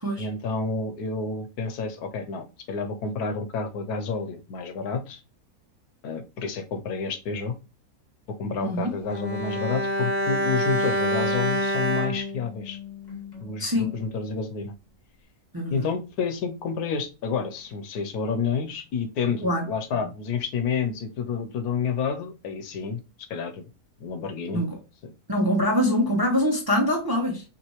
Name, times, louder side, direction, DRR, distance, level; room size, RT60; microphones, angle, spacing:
voice 1, 0.2-5.2 6.0-7.5 8.4-12.8 13.4-14.7 15.7-23.0 23.3-23.7 24.0-24.6 25.0-25.1, left 5 dB, 90° left, 1.3 m, -29 dB
voice 2, 8.6-8.9 13.6-13.9 15.5-15.9 19.4-19.7 20.0-20.1 24.5-24.8 25.3-27.4, left 1 dB, 20° right, 0.6 m, -24 dB
Bowed string instrument, 9.1-13.5 13.8-13.9, equal, 35° left, 0.9 m, -27 dB
5.6 x 2.5 x 3.1 m
omnidirectional pair, 1.6 m